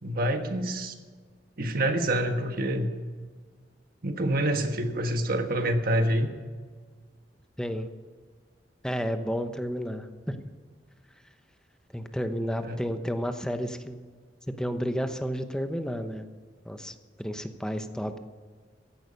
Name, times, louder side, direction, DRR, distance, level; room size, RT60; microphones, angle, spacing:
voice 1, 0.0-0.9 1.6-2.9 4.0-6.3 12.6-12.8, right 1 dB, 55° right, 6 dB, 1.4 m, -27 dB
voice 2, 7.6-7.9 8.8-10.4 11.9-14.0 14.5-16.3 16.7-18.2, equal, 5° left, 8 dB, 0.9 m, -31 dB
16.0 x 11.0 x 5.3 m, 1.5 s
head